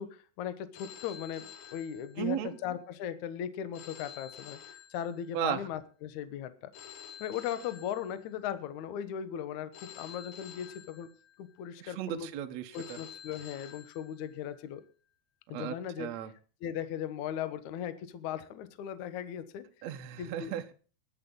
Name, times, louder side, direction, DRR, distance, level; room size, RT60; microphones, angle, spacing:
voice 1, 0.0-4.6 4.9-6.7 7.2-11.1 11.4-12.3 12.7-14.8 15.5-16.1 16.6-19.7 20.2-20.5, left 9 dB, 70° left, 12 dB, 1.8 m, -38 dB
Telephone, 0.7-2.6 3.7-5.6 6.7-8.6 9.7-11.6 12.7-14.6, left 9 dB, 90° left, 4.0 m, -50 dB
voice 2, 2.2-2.6 5.3-5.6 11.8-13.0 15.5-16.3 19.8-20.7, right 10 dB, 75° right, 6 dB, 1.5 m, -35 dB
21.0 x 8.2 x 3.8 m, 0.38 s
omnidirectional pair, 4.9 m